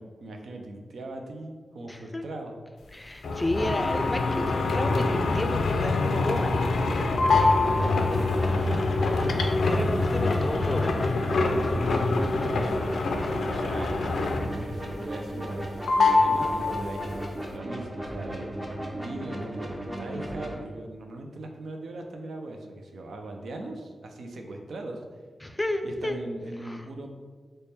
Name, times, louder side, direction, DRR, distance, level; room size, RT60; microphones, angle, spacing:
voice 1, 0.0-2.5 7.6-9.3 12.6-12.8 13.1-13.9 14.5-18.5 19.0-25.0 25.8-27.1, right 2 dB, 85° right, 3 dB, 0.4 m, -40 dB
voice 2, 1.9-2.2 2.9-6.5 9.3-10.9 25.4-26.2 26.6-26.9, left 1 dB, 20° left, 5 dB, 0.4 m, -32 dB
sound 1, 3.2-14.7 15.0-15.6 15.9-17.2, left 3 dB, 85° left, 0.3 m, -25 dB
sound 2, 7.7-20.5, right 1 dB, 25° right, 0.8 m, -36 dB
3.3 x 2.2 x 4.1 m, 1.5 s
cardioid pair, 50°, 0 cm